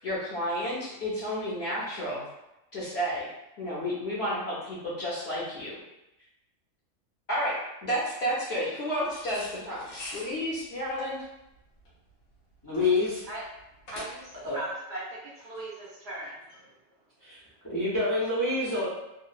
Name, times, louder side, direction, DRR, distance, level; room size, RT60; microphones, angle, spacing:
voice 1, 0.0-2.2 2.7-3.3 3.6-5.8 7.3-7.5 7.8-11.2, equal, 60° left, -8 dB, 0.8 m, -31 dB
sound 1, 9.1-14.5, left 1 dB, 85° left, 1.3 m, -45 dB
voice 2, 12.6-13.2 14.4-14.6 17.2-17.4 17.7-18.9, left 2 dB, 25° left, -9 dB, 0.5 m, -27 dB
voice 3, 13.9-16.7, right 1 dB, 60° right, -6 dB, 0.8 m, -39 dB
2.9 x 2.0 x 2.3 m, 0.92 s
omnidirectional pair, 1.4 m